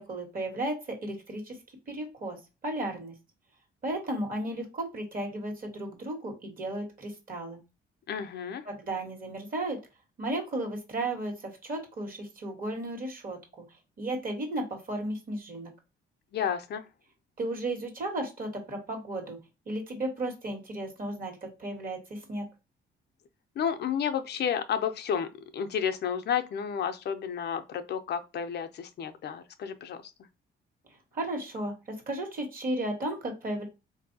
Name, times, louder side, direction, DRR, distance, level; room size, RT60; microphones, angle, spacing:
voice 1, 0.0-1.6 1.9-2.4 2.6-3.1 3.8-7.6 8.6-9.8 10.2-13.6 14.0-15.7 17.4-19.4 19.7-22.5 31.1-31.7 32.1-33.6, right 1 dB, 45° right, 1.4 m, -34 dB
voice 2, 8.1-8.6 16.3-16.8 23.6-25.3 25.5-30.0, left 7 dB, 55° left, 0.5 m, -31 dB
3.6 x 2.6 x 2.7 m
cardioid pair, 90°, 20 cm